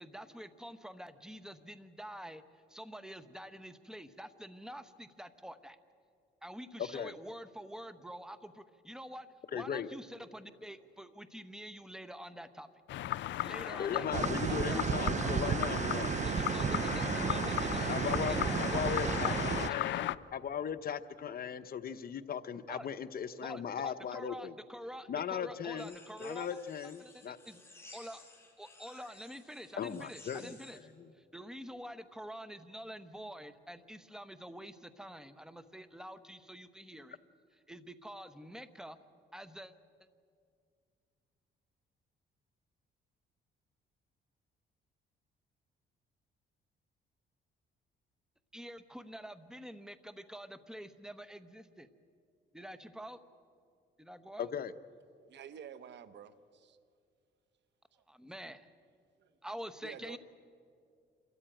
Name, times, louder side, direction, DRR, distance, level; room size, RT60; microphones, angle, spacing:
voice 1, 0.0-2.4 2.7-5.8 6.4-12.7 13.4-15.5 16.2-20.0 22.7-22.9 23.4-26.6 27.0-27.6 27.9-28.2 28.6-30.8 31.2-37.2 37.7-39.0 39.3-39.7 48.5-51.9 52.5-53.2 54.0-54.5 58.1-58.7 59.4-60.2, equal, 5° right, 1.0 m, -47 dB
voice 2, 6.8-7.1 9.5-9.9 13.8-16.1 17.9-24.5 25.1-27.4 29.8-30.5 31.0-31.1 54.4-54.7, left 8 dB, 50° left, 0.9 m, -38 dB
sound 1, 12.9-20.2, left 14 dB, 65° left, 0.5 m, -36 dB
sound 2, 14.1-19.7, right 7 dB, 35° right, 0.5 m, -33 dB
sound 3, 25.8-30.8, left 3 dB, 10° left, 4.2 m, -56 dB
voice 3, 55.3-56.8 57.9-58.0 59.2-59.3 59.8-60.2, right 8 dB, 65° right, 1.0 m, -50 dB
27.0 x 14.0 x 9.0 m
cardioid pair, 90°, 20 cm